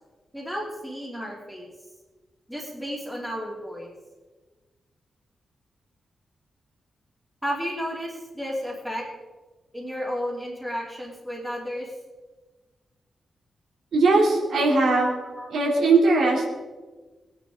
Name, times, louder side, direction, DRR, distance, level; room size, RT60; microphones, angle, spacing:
voice 1, 0.3-1.7 2.5-3.9 7.4-9.1 9.7-11.9 14.5-14.6 15.2-15.5, equal, ahead, -3 dB, 2.7 m, -32 dB
voice 2, 13.9-15.1 15.5-16.5, right 3 dB, 75° right, -1 dB, 3.0 m, -19 dB
20.5 x 10.0 x 3.7 m, 1.3 s
wide cardioid pair, 180°, 0 cm